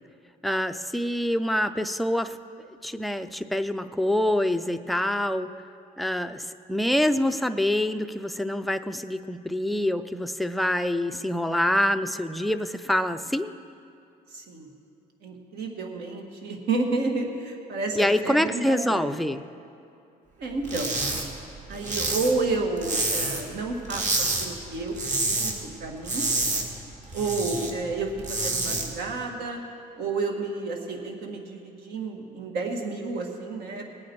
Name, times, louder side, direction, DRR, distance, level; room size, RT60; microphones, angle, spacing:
voice 1, 0.4-2.4 2.8-5.5 6.0-13.5 17.9-19.4, left 1 dB, ahead, 8 dB, 0.4 m, -26 dB
voice 2, 14.3-14.7 15.2-19.0 20.4-21.0 21.7-26.3 27.1-28.1 28.4-29.6 30.0-33.9, right 3 dB, 75° right, 2 dB, 1.8 m, -30 dB
sound 1, 20.6-21.2 21.5-23.5 23.9-24.5 24.8-25.5 25.8-27.7 28.1-28.9, right 2 dB, 45° right, 1.9 m, -28 dB
19.5 x 8.7 x 4.6 m, 2.6 s
cardioid pair, 110°, 17 cm